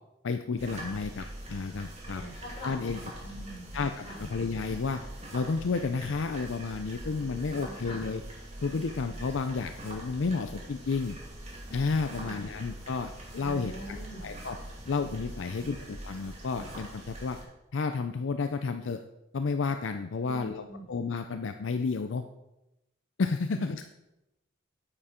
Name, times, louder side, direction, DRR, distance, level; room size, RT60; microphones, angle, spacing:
voice 1, 0.2-2.2 2.6-3.0 3.7-5.0 5.3-8.2 8.6-11.2 11.7-14.0 14.2-14.6 14.9-17.4 17.7-19.0 19.3-22.2 23.2-23.8, left 4 dB, 65° left, 7 dB, 0.5 m, -31 dB
sound 1, 0.6-17.4, right 1 dB, 35° right, 2.5 m, -43 dB
voice 2, 2.1-2.9 3.2-4.3 7.2-8.0 12.1-12.5 13.4-14.2 15.6-15.7 20.2-20.8 23.4-23.9, equal, 30° left, -4 dB, 4.3 m, -44 dB
8.8 x 8.7 x 4.4 m, 0.92 s
head